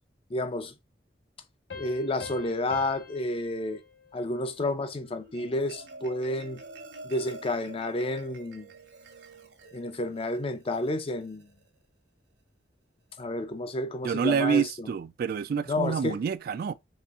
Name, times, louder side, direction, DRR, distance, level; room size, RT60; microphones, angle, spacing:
voice 1, 0.3-0.7 1.7-3.8 4.1-6.6 7.0-8.7 9.7-11.5 13.2-14.9 15.7-16.2, left 1 dB, 30° left, 0.5 m, -30 dB
sound 1, 1.7-5.0, left 5 dB, 70° left, 1.1 m, -45 dB
Marimba xylophone, 5.1-11.7, right 3 dB, 80° right, 1.2 m, -48 dB
voice 2, 14.0-16.7, right 6 dB, 55° right, 0.3 m, -27 dB
4.2 x 3.3 x 2.4 m
head